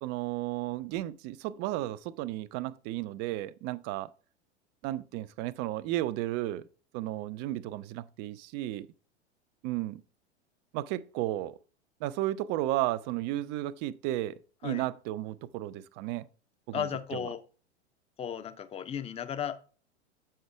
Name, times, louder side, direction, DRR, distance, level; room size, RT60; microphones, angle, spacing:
voice 1, 0.0-4.1 4.8-6.6 6.9-8.9 9.6-10.0 10.7-11.6 12.0-16.3 16.7-17.2, right 15 dB, 30° right, 0.4 m, -33 dB
voice 2, 16.7-17.4 18.2-19.7, left 9 dB, 20° left, 0.7 m, -35 dB
7.8 x 5.6 x 3.3 m
figure-of-eight pair, 95°, 34 cm